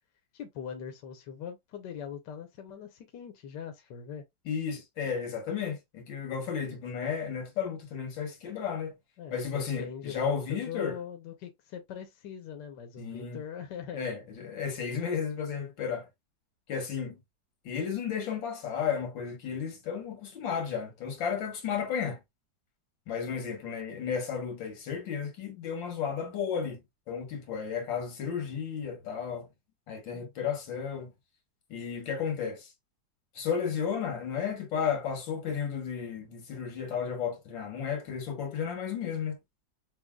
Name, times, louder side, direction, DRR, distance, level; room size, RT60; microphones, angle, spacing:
voice 1, 0.3-4.2 9.2-14.1, left 8 dB, 70° left, 1.4 m, -41 dB
voice 2, 4.5-9.0 9.3-11.0 13.0-13.4 13.9-16.1 16.7-17.2 17.6-22.2 23.1-26.8 27.1-29.5 29.9-31.1 31.7-32.7 33.4-39.4, left 7 dB, 85° left, 2.0 m, -33 dB
6.2 x 2.6 x 2.3 m
omnidirectional pair, 2.0 m